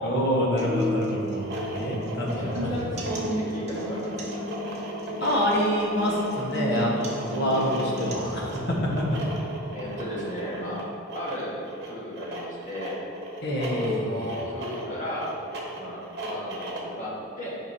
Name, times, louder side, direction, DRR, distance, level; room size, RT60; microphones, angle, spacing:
voice 1, 0.0-2.7 5.2-8.7 13.4-14.4, equal, 50° left, -3 dB, 1.2 m, -26 dB
sound 1, 0.6-8.6, equal, 35° right, 0.8 m, -34 dB
sound 2, 1.3-17.0, right 1 dB, 50° right, 1.1 m, -37 dB
voice 2, 2.3-4.4 9.7-10.9 11.1-13.0 13.7-15.3 15.7-17.6, equal, 35° left, -6 dB, 1.5 m, -35 dB
9.3 x 5.2 x 2.8 m, 2.4 s
head